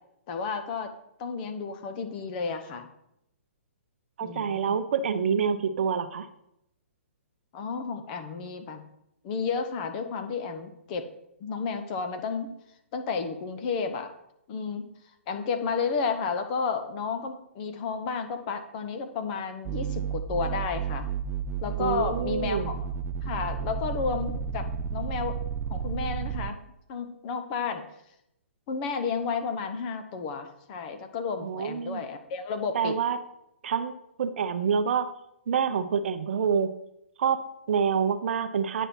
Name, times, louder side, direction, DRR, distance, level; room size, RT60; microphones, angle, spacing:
voice 1, 0.3-0.9 1.2-2.9 4.2-4.8 7.5-8.8 9.2-11.1 11.4-12.5 12.9-14.1 14.5-14.9 15.3-21.1 21.6-22.7 23.2-24.7 24.9-25.4 25.7-26.6 26.9-27.8 28.7-33.0, left 5 dB, 35° left, 8 dB, 1.0 m, -32 dB
voice 2, 4.2-6.3 21.8-22.8 31.4-32.0 32.7-33.2 33.6-33.9 34.2-35.1 35.5-36.7 37.2-38.9, right 7 dB, 60° right, 9 dB, 0.7 m, -27 dB
sound 1, 19.6-26.5, right 7 dB, 30° right, 0.5 m, -32 dB
9.2 x 5.4 x 4.4 m, 0.80 s
hypercardioid pair, 135°, 7 cm